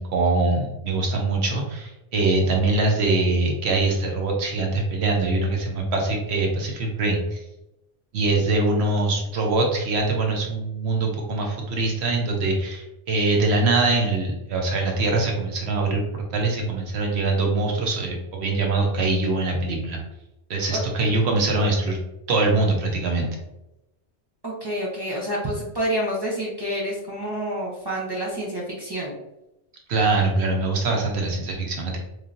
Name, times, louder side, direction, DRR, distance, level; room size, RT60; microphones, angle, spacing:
voice 1, 0.0-7.4 8.1-20.0 20.5-22.0 22.3-23.4 29.9-32.0, right 3 dB, 70° right, 1 dB, 0.9 m, -23 dB
voice 2, 24.4-29.2, equal, 35° right, -5 dB, 0.4 m, -28 dB
3.1 x 2.5 x 2.5 m, 0.91 s
omnidirectional pair, 1.2 m